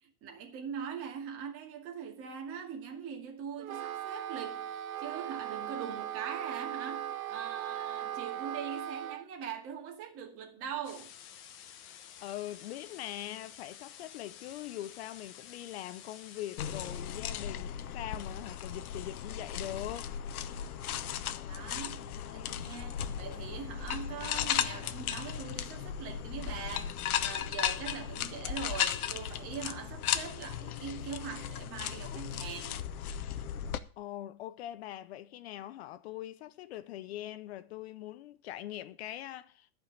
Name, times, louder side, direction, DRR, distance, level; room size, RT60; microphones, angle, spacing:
voice 1, 0.0-11.1 20.4-21.2 21.5-32.8, right 7 dB, 30° right, 2.3 m, -42 dB
Wind instrument woodwind instrument, 3.6-9.2, right 11 dB, 65° right, 1.0 m, -38 dB
sound 1, 10.8-17.0, left 9 dB, 25° left, 1.1 m, -51 dB
voice 2, 12.2-20.1 21.9-22.7 34.0-39.7, left 13 dB, 45° left, 0.6 m, -42 dB
sound 2, 16.6-33.8, left 10 dB, 70° left, 1.0 m, -36 dB
11.5 x 5.3 x 8.7 m
supercardioid pair, 150°, 45 cm